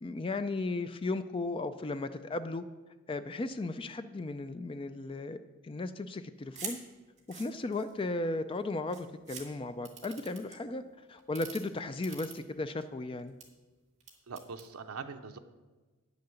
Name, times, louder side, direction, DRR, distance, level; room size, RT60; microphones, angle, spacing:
voice 1, 0.0-2.6 3.1-5.4 5.6-6.8 7.3-10.8 11.1-13.3, left 2 dB, 25° left, 11 dB, 0.3 m, -35 dB
sound 1, 6.5-6.8 7.2-8.0 8.6-8.7 8.9-9.4 9.8-10.5 11.2-11.6 12.0-12.8 13.2-13.4 14.0-14.7, right 6 dB, 30° right, 1.9 m, -43 dB
voice 2, 14.3-15.4, right 5 dB, 75° right, 5 dB, 0.7 m, -42 dB
9.6 x 6.6 x 7.0 m, 1.3 s
head